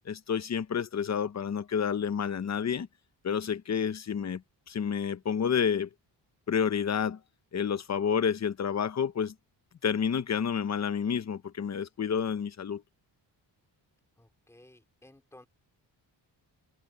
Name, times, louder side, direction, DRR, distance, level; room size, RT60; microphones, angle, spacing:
voice 1, 0.1-2.9 3.2-4.4 4.7-5.9 6.5-7.2 7.5-9.3 9.8-12.8, left 7 dB, 40° left, 0.9 m, -29 dB
voice 2, 14.2-15.5, left 1 dB, 5° left, 3.0 m, -57 dB
wide cardioid pair, 160°, 44 cm